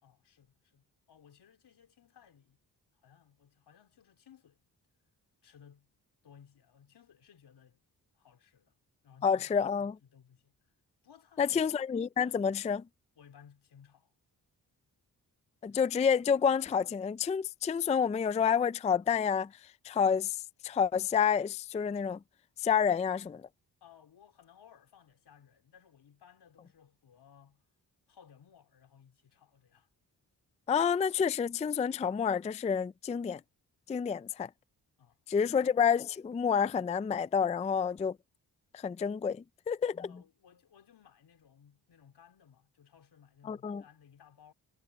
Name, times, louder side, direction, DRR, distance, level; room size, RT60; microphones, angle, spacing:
voice 1, 0.0-2.6 2.9-4.7 5.4-5.9 6.2-7.8 8.1-8.8 9.0-10.6 11.0-11.7 13.1-14.1 23.8-27.6 28.1-29.9 34.1-34.3 35.0-35.6 40.1-44.5, left 8 dB, 85° left, 4.2 m, -60 dB
voice 2, 9.2-9.9 11.4-12.8 15.6-19.5 19.8-20.4 20.6-22.2 22.6-23.4 30.7-33.4 33.9-34.5 35.3-38.2 38.7-40.1 43.5-43.8, left 7 dB, 20° left, 0.3 m, -29 dB
cardioid pair, 85°, 39 cm